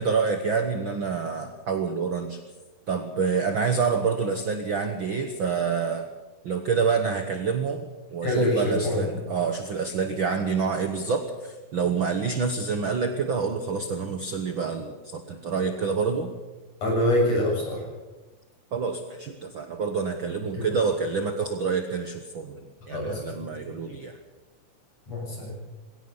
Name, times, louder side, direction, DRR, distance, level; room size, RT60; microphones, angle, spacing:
voice 1, 0.0-2.4 2.9-6.1 6.4-16.3 18.7-24.2, right 5 dB, 55° right, 6 dB, 1.5 m, -27 dB
voice 2, 8.2-9.0 16.8-17.8 20.5-20.7 22.9-23.2 25.1-25.6, left 1 dB, 50° left, -1 dB, 8.4 m, -25 dB
20.5 x 17.5 x 7.1 m, 1.2 s
omnidirectional pair, 3.7 m